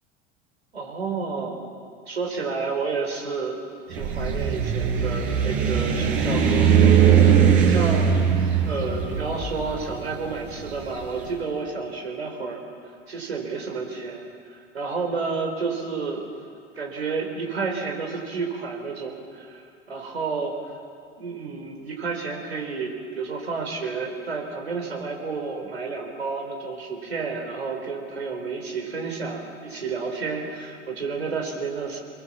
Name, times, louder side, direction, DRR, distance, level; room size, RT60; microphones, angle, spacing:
voice 1, 0.7-1.7 2.1-3.6 3.9-12.6 13.1-16.2 16.7-20.6 21.2-32.0, right 4 dB, 80° right, 2 dB, 4.2 m, -31 dB
sound 1, 3.9-11.1, right 7 dB, 55° right, 6.1 m, -20 dB
25.5 x 22.5 x 7.4 m, 2.3 s
figure-of-eight pair, 80°, 31 cm